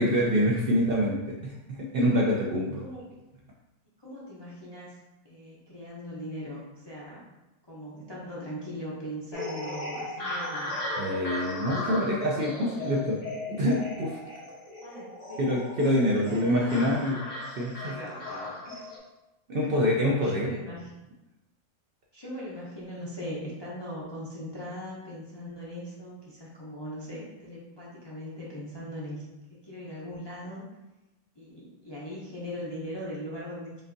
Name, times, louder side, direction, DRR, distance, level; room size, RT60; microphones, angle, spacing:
voice 1, 0.0-2.9 11.0-13.2 13.6-14.2 15.4-17.2 17.6-18.0 19.5-20.5, equal, 60° right, -3 dB, 0.6 m, -26 dB
voice 2, 4.0-5.0 5.2-7.2 7.7-10.8 11.6-12.0 12.5-13.2 14.8-15.4 16.1-16.8 17.7-18.9 19.5-19.7 20.2-20.9 22.1-29.2 29.5-30.6 31.4-33.8, equal, 30° left, -6 dB, 0.5 m, -40 dB
sound 1, 9.3-19.0, left 2 dB, 70° left, 1.4 m, -37 dB
5.1 x 2.6 x 2.5 m, 1.0 s
omnidirectional pair, 1.4 m